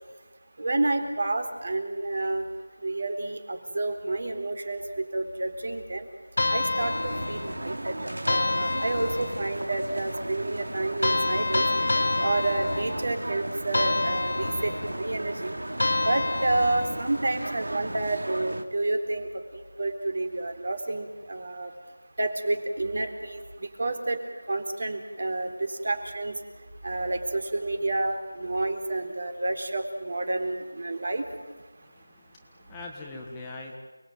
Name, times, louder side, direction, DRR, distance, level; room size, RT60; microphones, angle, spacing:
voice 1, 0.6-2.4 2.8-6.1 6.5-7.9 8.3-11.6 12.2-15.5 16.0-19.3 19.5-21.7 22.2-23.4 23.8-24.2 24.5-26.4 26.8-31.2, right 2 dB, 45° right, 6 dB, 3.8 m, -29 dB
sound 1, 6.4-7.7 8.3-9.6 11.0-13.2 13.7-15.0 15.8-17.1, left 2 dB, 60° left, 1.3 m, -28 dB
sound 2, 6.8-18.6, right 1 dB, 90° right, 2.8 m, -36 dB
voice 2, 31.8-33.7, left 2 dB, 10° left, -2 dB, 1.4 m, -42 dB
29.5 x 20.5 x 9.1 m, 1.2 s
figure-of-eight pair, 175°, 0 cm